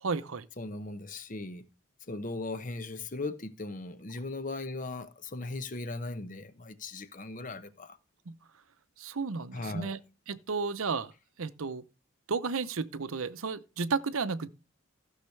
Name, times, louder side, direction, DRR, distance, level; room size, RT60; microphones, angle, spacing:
voice 1, 0.0-0.5 8.3-8.4 9.0-10.0 10.3-11.1 11.4-11.8 12.3-14.5, right 4 dB, 75° right, 0.7 m, -33 dB
voice 2, 0.6-1.6 2.1-8.0 9.5-10.0, left 2 dB, 35° left, 0.8 m, -38 dB
15.0 x 6.5 x 3.3 m
head